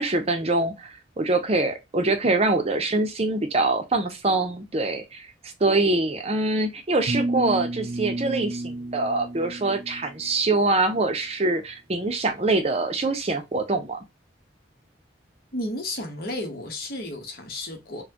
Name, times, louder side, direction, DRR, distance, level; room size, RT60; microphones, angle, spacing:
voice 1, 0.0-5.3 5.6-14.0, right 2 dB, 35° right, 0.6 m, -24 dB
sound 1, 7.1-10.2, right 2 dB, 85° right, 0.8 m, -30 dB
voice 2, 15.5-18.0, left 1 dB, 55° left, 1.1 m, -32 dB
4.1 x 2.2 x 2.8 m
head